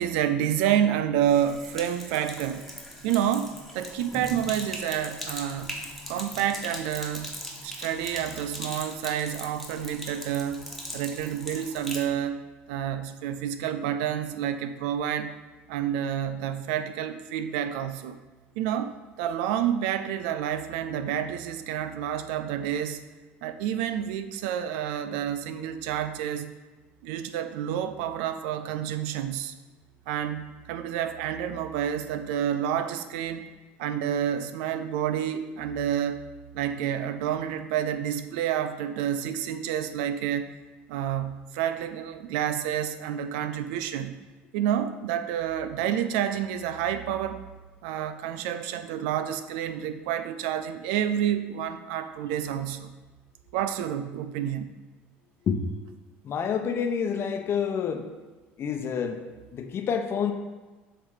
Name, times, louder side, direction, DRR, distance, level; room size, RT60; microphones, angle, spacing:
voice 1, 0.0-2.7 3.0-5.7 6.1-7.3 7.6-10.6 10.9-12.4 12.7-15.4 15.7-18.2 18.6-18.9 19.2-23.0 23.4-26.5 27.0-29.5 30.1-33.5 33.8-36.2 36.5-40.5 40.9-44.2 44.5-47.4 47.8-52.9 53.5-54.7, right 10 dB, 75° right, 10 dB, 0.5 m, -29 dB
Sink (filling or washing), 1.2-12.1, equal, ahead, 1.5 m, -40 dB
voice 2, 56.2-58.1 58.6-59.2 59.5-60.3, left 7 dB, 50° left, 6 dB, 0.9 m, -28 dB
7.7 x 3.4 x 5.6 m, 1.2 s
hypercardioid pair, 75°, 6 cm